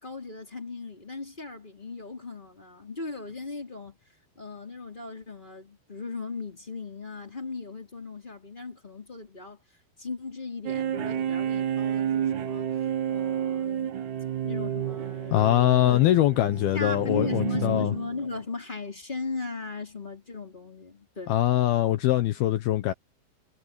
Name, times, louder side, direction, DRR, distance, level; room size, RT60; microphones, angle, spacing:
voice 1, 0.0-4.0 4.4-9.6 10.0-12.7 13.1-13.9 14.4-16.1 16.7-21.4, left 3 dB, 10° left, 3.9 m, -37 dB
sound 1, 10.7-18.3, right 10 dB, 65° right, 1.9 m, -30 dB
voice 2, 15.3-17.9 21.3-22.9, left 13 dB, 70° left, 2.6 m, -22 dB
omnidirectional pair, 5.0 m